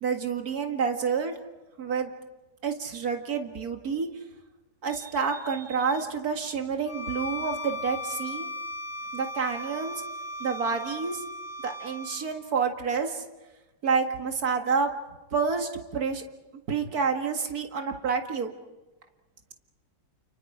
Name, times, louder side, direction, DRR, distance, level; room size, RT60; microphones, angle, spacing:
voice 1, 0.0-1.3 1.8-2.1 2.6-4.1 4.8-8.5 9.1-10.0 10.4-11.2 11.6-13.2 13.8-14.9 15.3-16.2 16.7-18.5, right 5 dB, 65° right, 4 dB, 2.4 m, -28 dB
Bowed string instrument, 6.9-12.3, left 1 dB, 20° left, 6.8 m, -37 dB
29.5 x 29.5 x 5.0 m, 1.1 s
omnidirectional pair, 1.7 m